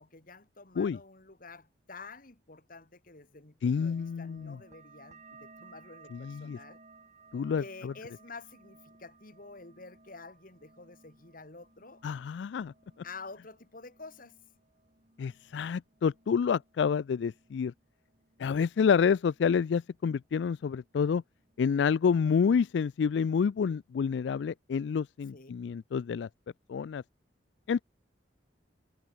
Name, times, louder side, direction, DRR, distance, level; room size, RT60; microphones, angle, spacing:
voice 1, 0.0-6.8 7.6-12.0 13.0-14.4 25.3-25.5, left 3 dB, 50° left, 2.7 m, -49 dB
voice 2, 3.6-4.6 6.1-6.6 7.3-7.9 12.0-12.7 15.2-17.7 18.4-21.2 21.6-26.3 26.7-27.0 27.7-27.8, left 6 dB, 80° left, 0.3 m, -28 dB
sound 1, 3.8-18.9 19.2-20.0 20.3-21.0 21.4-21.8, right 3 dB, 40° right, 7.8 m, -59 dB
head